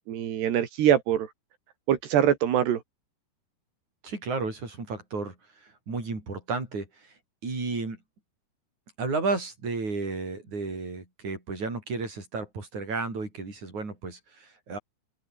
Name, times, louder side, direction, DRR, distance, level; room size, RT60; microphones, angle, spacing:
voice 1, 0.1-1.3 1.9-2.8, right 10 dB, 80° right, 4.5 m, -23 dB
voice 2, 4.0-5.4 5.6-6.9 7.4-8.0 9.0-14.8, right 4 dB, 45° right, 8.8 m, -32 dB
omnidirectional pair, 4.7 m